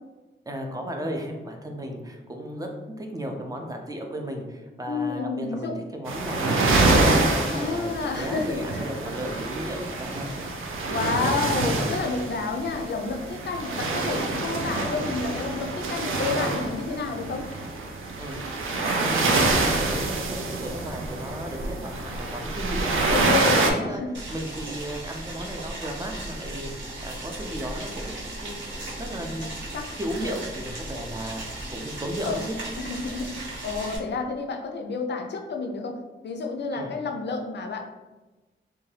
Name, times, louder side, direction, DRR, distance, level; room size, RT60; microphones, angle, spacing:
voice 1, 0.5-2.7 3.0-10.5 14.4-14.6 18.2-18.5 18.7-22.9 23.2-24.0 24.3-26.7 27.0-32.6 36.7-36.9, equal, 20° right, 2 dB, 0.4 m, -35 dB
voice 2, 4.9-5.8 7.5-8.8 10.9-17.4 23.0-24.1 29.7-29.9 30.2-30.4 32.2-32.4 32.8-36.0 36.2-37.9, left 4 dB, 60° left, 3 dB, 0.4 m, -30 dB
sound 1, 6.1-23.7, right 2 dB, 90° right, 0.4 m, -26 dB
Boiling, 24.1-34.0, right 1 dB, 65° right, 0.9 m, -36 dB
2.7 x 2.2 x 3.2 m, 1.2 s
wide cardioid pair, 100°, 20 cm